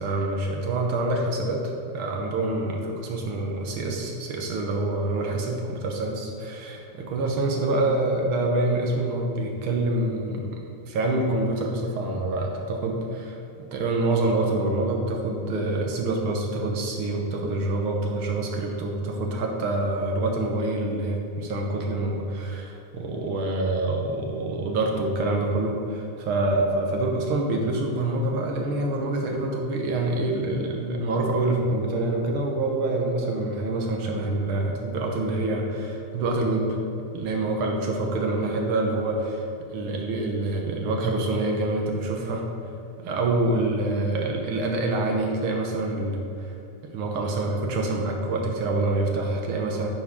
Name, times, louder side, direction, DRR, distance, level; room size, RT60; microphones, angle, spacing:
voice 1, 0.0-10.5 10.9-36.8 37.1-42.5 43.0-46.5 46.8-49.9, right 2 dB, 65° right, 1 dB, 1.3 m, -26 dB
9.8 x 9.0 x 3.7 m, 2.7 s
omnidirectional pair, 3.6 m